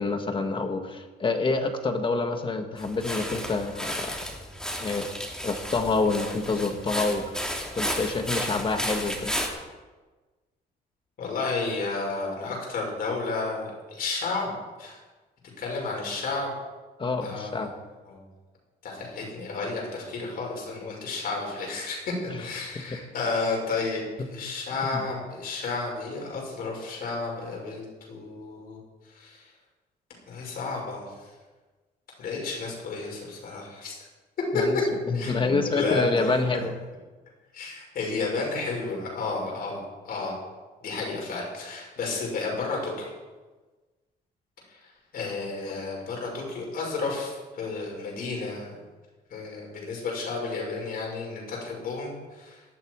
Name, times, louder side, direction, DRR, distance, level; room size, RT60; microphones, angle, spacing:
voice 1, 0.0-4.2 4.8-5.1 5.4-7.4 7.7-9.3 17.0-17.7 24.9-25.0 34.5-34.8 35.1-36.7 45.7-45.8, left 3 dB, 30° left, 6 dB, 1.7 m, -27 dB
sound 1, 2.8-9.5, equal, 5° left, 2.9 m, -33 dB
voice 2, 11.2-15.0 15.6-16.5 17.2-17.7 18.0-18.2 18.8-24.0 24.3-28.8 29.0-29.5 30.3-31.3 32.2-34.1 34.5-34.6 35.1-36.6 37.5-40.4 40.8-43.1 44.7-48.8 49.3-52.6, left 3 dB, 60° left, -1 dB, 6.2 m, -32 dB
18.0 x 12.5 x 4.8 m, 1.3 s
cardioid pair, 140°, 17 cm